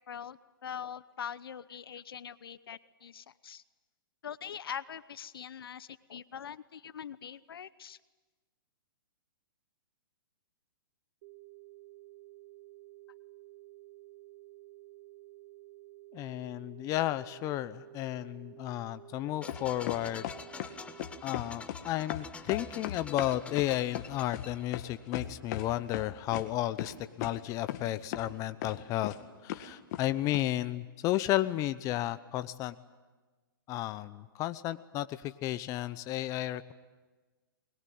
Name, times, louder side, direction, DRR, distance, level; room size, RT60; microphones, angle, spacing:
voice 1, 0.1-3.6 4.2-8.0, left 8 dB, 75° left, 17 dB, 0.9 m, -43 dB
sound 1, 11.2-21.2, right 19 dB, 50° right, 1.7 m, -53 dB
voice 2, 16.1-20.2 21.2-29.1 29.4-32.7 33.7-36.7, left 14 dB, 25° left, 13 dB, 0.9 m, -33 dB
sound 2, 19.4-25.1, left 5 dB, 10° left, 1.2 m, -47 dB
sound 3, 19.5-20.7 21.0-21.8 22.1-25.7 25.9-26.5 26.8-26.9 27.2-27.3 27.7-27.9 28.1-28.3 28.6-29.2 29.5-30.0 30.3-30.4, left 12 dB, 45° left, 1.8 m, -37 dB
22.5 x 21.5 x 9.4 m, 1.3 s
hypercardioid pair, 135°, 12 cm